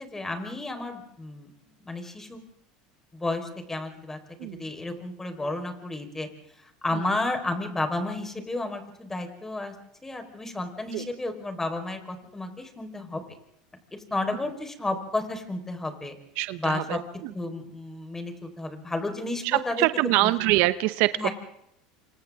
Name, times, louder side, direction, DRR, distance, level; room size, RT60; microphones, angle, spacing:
voice 1, 0.0-2.4 3.1-4.2 4.6-6.3 6.8-9.7 10.0-13.4 13.9-16.2 16.6-17.0 17.3-19.9 20.2-20.3 21.2-21.3, left 2 dB, 15° left, 5 dB, 4.5 m, -32 dB
voice 2, 16.4-17.3 19.4-21.1, right 19 dB, 65° right, 14 dB, 0.9 m, -24 dB
29.5 x 25.5 x 3.7 m, 0.76 s
hypercardioid pair, 95°, 3 cm